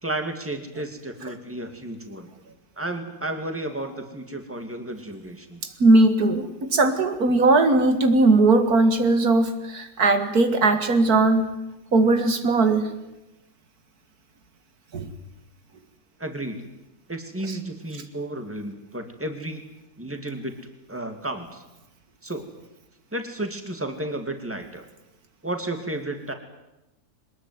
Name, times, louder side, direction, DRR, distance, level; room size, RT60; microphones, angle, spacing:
voice 1, 0.0-2.3 2.8-5.8 16.2-16.6 17.1-19.7 20.0-20.5 20.9-21.6 22.2-22.4 23.1-24.9 25.4-26.3, right 1 dB, 10° right, 6 dB, 2.5 m, -32 dB
voice 2, 5.8-11.5 11.9-12.9 14.9-15.1, right 2 dB, 75° right, 8 dB, 2.4 m, -19 dB
23.0 x 20.5 x 9.6 m, 0.96 s
omnidirectional pair, 1.6 m